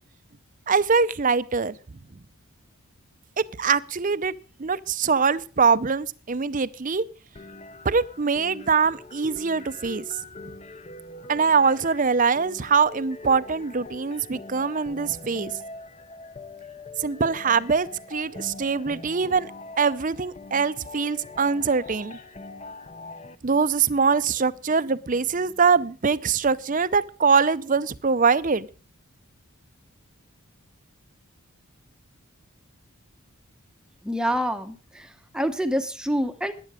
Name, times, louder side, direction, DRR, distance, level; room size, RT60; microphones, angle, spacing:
voice 1, 0.7-1.7 3.4-4.3 4.6-7.0 7.8-10.0 11.3-15.5 17.0-19.5 19.8-22.2 23.4-28.7, right 5 dB, 35° right, 0.5 m, -23 dB
sound 1, 7.3-23.3, left 2 dB, 30° left, 0.7 m, -43 dB
voice 2, 34.0-36.5, equal, 5° right, 0.8 m, -27 dB
15.0 x 10.5 x 4.9 m
head